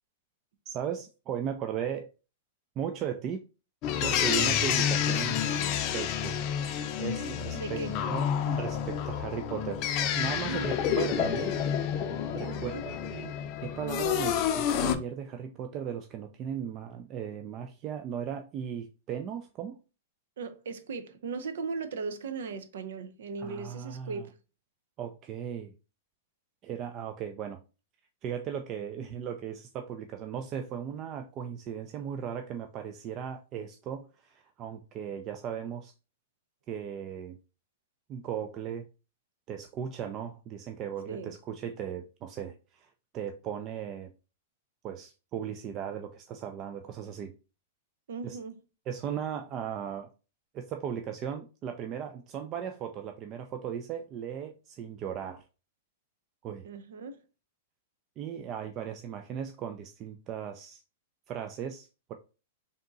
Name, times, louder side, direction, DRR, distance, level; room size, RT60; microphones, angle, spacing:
voice 1, 0.7-2.1 2.8-3.4 4.0-5.5 5.9-6.5 7.0-11.5 12.3-19.8 23.4-24.2 25.0-25.7 26.6-27.6 28.2-35.9 36.7-37.4 38.1-38.9 39.5-42.9 43.1-44.1 44.8-47.3 48.2-48.4 48.9-50.1 50.5-55.4 56.4-56.7 58.2-60.8 61.3-62.1, right 8 dB, 35° right, 0.4 m, -37 dB
sound 1, 3.8-15.0, left 9 dB, 40° left, 0.5 m, -29 dB
voice 2, 7.2-8.0 10.5-10.8 12.4-12.8 20.4-24.4 41.1-41.3 48.1-48.6 56.6-57.2, right 4 dB, 75° right, 0.7 m, -38 dB
3.6 x 2.8 x 3.9 m
hypercardioid pair, 125°, 0 cm